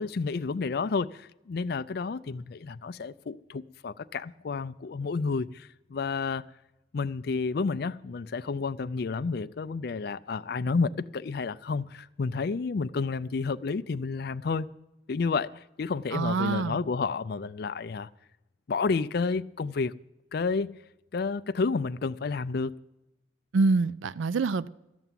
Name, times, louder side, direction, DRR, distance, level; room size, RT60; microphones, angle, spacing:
voice 1, 0.0-6.4 6.9-14.7 15.1-18.1 18.7-19.9 20.3-20.7 21.1-22.8, left 4 dB, 55° left, 0.4 m, -30 dB
voice 2, 16.1-16.8 23.5-24.7, right 3 dB, 75° right, 0.4 m, -25 dB
13.5 x 6.9 x 9.1 m
head